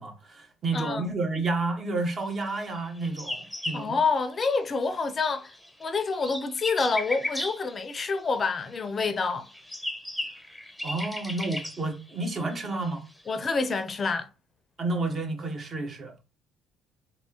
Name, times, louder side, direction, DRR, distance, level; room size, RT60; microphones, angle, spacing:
voice 1, 0.0-4.0 10.8-13.0 14.8-16.1, right 2 dB, 45° right, 1.0 m, -30 dB
voice 2, 0.7-1.1 3.7-5.5 5.8-9.5 13.3-14.3, left 4 dB, 40° left, 0.4 m, -27 dB
sound 1, 2.7-4.9 5.2-8.7 9.3-13.6, left 1 dB, ahead, 0.7 m, -37 dB
3.3 x 2.6 x 2.9 m
hypercardioid pair, 65°, 0 cm